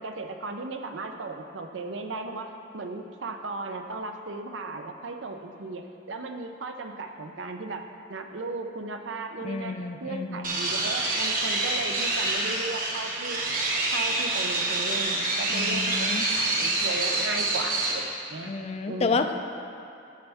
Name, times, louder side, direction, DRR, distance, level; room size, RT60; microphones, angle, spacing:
voice 1, 0.0-7.8 8.1-13.4 13.9-16.1 16.4-18.5 18.8-19.3, right 3 dB, 85° right, 5 dB, 0.6 m, -36 dB
voice 2, 9.4-10.5 15.5-16.3 18.4-19.3, left 4 dB, 35° left, 7 dB, 0.4 m, -30 dB
sound 1, 10.4-17.9, right 2 dB, 50° right, 1.3 m, -27 dB
11.0 x 6.7 x 3.5 m, 2.6 s
head